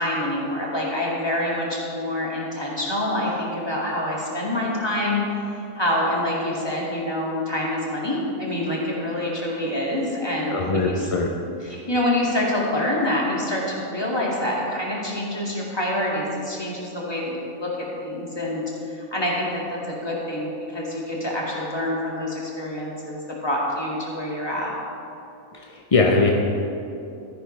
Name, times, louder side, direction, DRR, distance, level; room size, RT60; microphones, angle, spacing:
voice 1, 0.0-5.2 5.7-11.1 11.6-24.7, left 1 dB, 15° left, -5 dB, 2.1 m, -26 dB
voice 2, 10.5-11.3 25.5-26.3, left 3 dB, 40° left, 0 dB, 0.5 m, -21 dB
13.5 x 10.0 x 3.3 m, 2.8 s
omnidirectional pair, 1.5 m